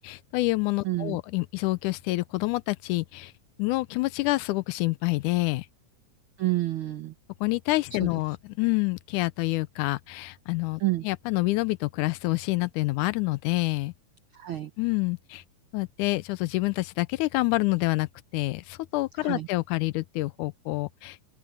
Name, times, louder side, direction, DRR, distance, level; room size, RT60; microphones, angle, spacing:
voice 1, 0.0-3.3 3.6-5.7 7.4-13.9 14.8-15.4 15.7-21.3, left 21 dB, 85° left, 2.1 m, -27 dB
voice 2, 0.8-1.2 6.4-7.1 8.0-8.1 10.8-11.1 14.3-14.7 19.2-19.5, right 16 dB, 75° right, 1.2 m, -29 dB
open air
omnidirectional pair, 3.5 m